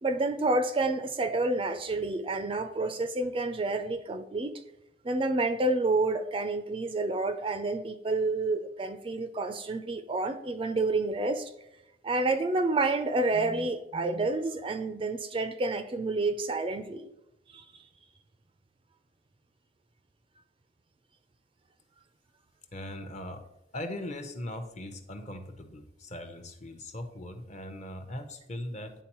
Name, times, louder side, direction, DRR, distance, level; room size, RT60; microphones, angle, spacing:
voice 1, 0.0-4.5 5.0-11.5 12.0-17.0 17.5-17.6, right 2 dB, 25° right, 9 dB, 0.4 m, -29 dB
voice 2, 22.7-23.4 23.7-29.0, left 1 dB, 35° left, 7 dB, 0.7 m, -40 dB
10.0 x 3.9 x 3.0 m, 0.90 s
head